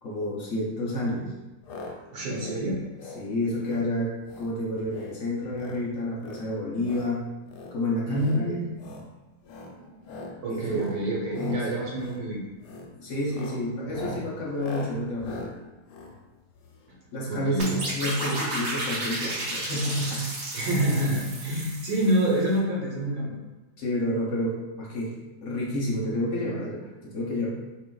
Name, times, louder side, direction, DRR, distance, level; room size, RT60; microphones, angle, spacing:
voice 1, 0.0-1.3 3.1-7.2 7.7-8.5 10.5-10.9 11.3-11.6 13.0-15.4 17.1-20.2 23.8-25.1 25.4-27.5, left 1 dB, 60° left, -5 dB, 1.0 m, -30 dB
sound 1, 1.6-1.9 2.2-2.6 2.9-3.2 3.6-3.9 4.2-4.5 4.8-5.2 5.5-5.8 6.2-7.1 7.5-7.7 8.1-8.4 8.7-9.1 9.4-9.7 10.0-10.3 10.7-11.0 11.3-11.6 11.9-12.2 12.6-12.9 13.2-16.9 17.7-18.0 18.2-18.3 18.5-18.6, left 2 dB, 85° left, 1.2 m, -41 dB
voice 2, 2.1-2.8 8.1-8.7 9.8-10.0 10.4-12.4 16.9-17.0 17.2-17.8 20.5-23.4, right 1 dB, 70° right, -4 dB, 1.3 m, -27 dB
sound 2, 17.6-22.4, right 1 dB, 50° right, 0.7 m, -33 dB
4.2 x 2.4 x 2.2 m, 1.1 s
omnidirectional pair, 1.7 m